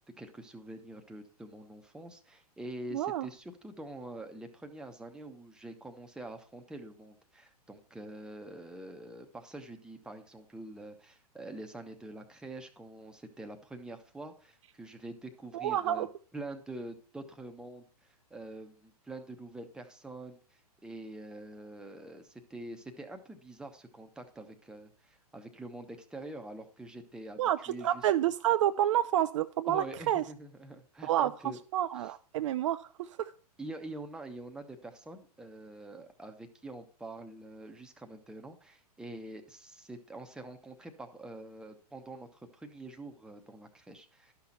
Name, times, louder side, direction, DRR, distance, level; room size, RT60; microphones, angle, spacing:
voice 1, 0.2-16.1 16.3-28.1 29.7-31.6 32.0-32.1 33.6-44.3, right 2 dB, 5° right, 5 dB, 0.9 m, -45 dB
voice 2, 2.9-3.3 15.5-16.1 27.4-30.2 31.0-33.3, right 12 dB, 50° right, 11 dB, 0.4 m, -29 dB
11.5 x 5.8 x 4.3 m, 0.42 s
hypercardioid pair, 115°, 20 cm